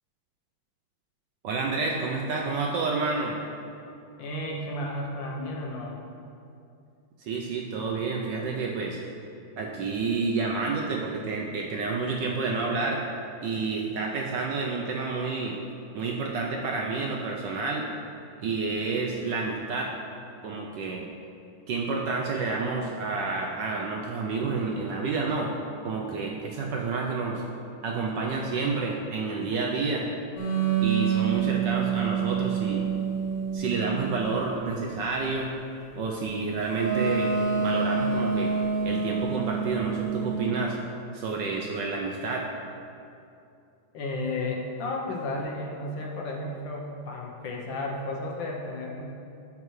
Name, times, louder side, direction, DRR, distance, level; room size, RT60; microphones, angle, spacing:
voice 1, 1.4-3.4 7.2-9.0 9.6-13.0 13.4-15.6 15.9-17.9 18.4-19.9 20.4-21.1 21.7-25.5 25.8-27.4 27.8-30.0 30.8-32.8 33.5-35.5 36.0-37.3 37.6-38.5 38.8-40.8 41.1-42.4, right 4 dB, 70° right, -1 dB, 1.1 m, -29 dB
voice 2, 4.2-6.0 43.9-49.0, left 2 dB, 65° left, -1 dB, 1.5 m, -33 dB
sound 1, 30.4-34.4 36.7-40.4, right 6 dB, 85° left, 2.0 m, -27 dB
12.0 x 5.6 x 3.1 m, 2.6 s
omnidirectional pair, 2.4 m